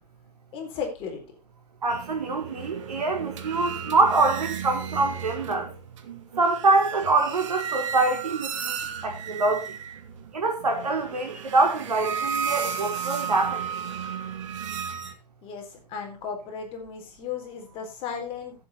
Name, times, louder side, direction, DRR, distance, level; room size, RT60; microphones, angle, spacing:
voice 1, 0.5-1.2 15.4-18.5, left 6 dB, 25° left, 4.0 m, -35 dB
voice 2, 1.8-5.7 6.4-8.7 9.0-9.6 10.3-13.6, right 3 dB, 70° right, 4.5 m, -24 dB
sound 1, 1.9-15.1, right 7 dB, 50° right, 2.1 m, -34 dB
13.5 x 8.0 x 4.4 m
figure-of-eight pair, 125°, 21 cm